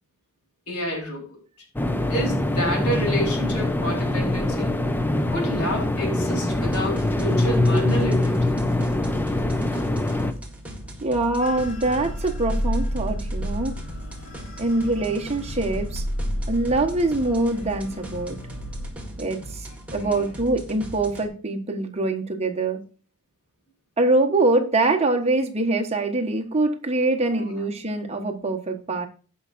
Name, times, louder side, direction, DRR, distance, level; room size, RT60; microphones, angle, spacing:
voice 1, 0.7-1.4 2.1-4.7 5.3-8.6 20.0-20.2 27.3-27.5, equal, 80° left, -1 dB, 3.9 m, -29 dB
sound 1, 1.8-10.3, left 1 dB, 10° left, 0.6 m, -23 dB
sound 2, 6.5-21.3, right 1 dB, 5° right, 1.7 m, -39 dB
voice 2, 11.0-13.7 14.6-16.0 16.5-18.4 19.2-22.8 24.0-29.1, right 2 dB, 30° right, 3 dB, 1.2 m, -24 dB
sound 3, 11.4-18.9, equal, 65° left, 1.6 m, -31 dB
16.0 x 5.6 x 2.5 m, 0.38 s
head